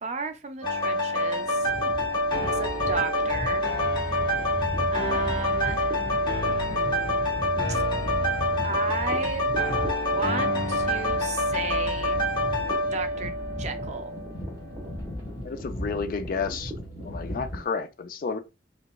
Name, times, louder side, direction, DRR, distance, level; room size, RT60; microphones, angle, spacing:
voice 1, 0.0-1.7 2.3-3.7 4.9-5.9 7.7-7.8 8.6-9.5 9.8-12.2 12.9-13.3 13.6-14.1, right 5 dB, 35° right, 0.4 m, -34 dB
sound 1, 0.6-14.3 14.8-14.9, left 1 dB, 25° left, 0.8 m, -26 dB
sound 2, 1.5-17.6, left 1 dB, 15° right, 1.1 m, -38 dB
sound 3, 1.8-17.6, left 1 dB, 65° left, 1.0 m, -39 dB
voice 2, 15.4-16.7 17.0-18.4, left 5 dB, 45° left, 0.3 m, -31 dB
3.8 x 2.3 x 2.3 m
head